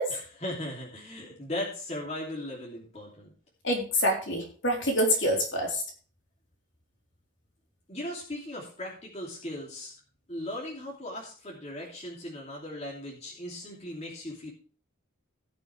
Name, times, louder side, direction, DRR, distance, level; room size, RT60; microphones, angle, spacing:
voice 1, 0.1-3.3 7.9-9.9 10.3-14.5, left 1 dB, 30° left, -3 dB, 2.9 m, -38 dB
voice 2, 3.6-5.8, equal, 60° left, 0 dB, 4.0 m, -26 dB
18.5 x 6.8 x 3.4 m, 0.40 s
head